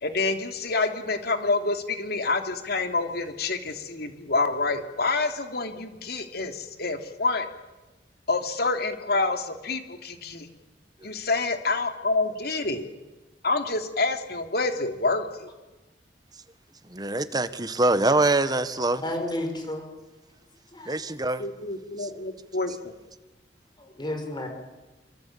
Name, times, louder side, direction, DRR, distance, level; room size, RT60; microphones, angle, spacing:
voice 1, 0.0-7.5 8.3-10.5 11.0-12.9 13.4-15.5 21.4-22.9, left 3 dB, 60° left, 6 dB, 2.9 m, -27 dB
voice 2, 16.9-19.0 20.8-21.4 22.0-22.1, right 2 dB, 25° right, 12 dB, 1.4 m, -24 dB
voice 3, 19.0-19.9 20.7-21.0 23.8-24.5, left 1 dB, 25° left, 4 dB, 6.0 m, -32 dB
26.5 x 25.5 x 8.7 m, 1.1 s
head